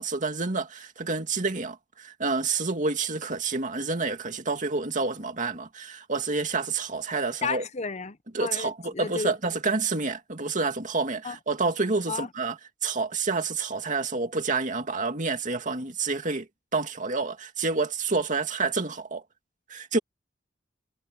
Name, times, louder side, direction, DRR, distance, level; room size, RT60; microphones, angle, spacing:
voice 1, 0.0-7.6 8.3-19.2 19.7-20.0, right 4 dB, 45° right, 2.4 m, -28 dB
voice 2, 7.4-9.3 11.2-11.4 12.1-12.3, left 5 dB, 40° left, 0.8 m, -33 dB
head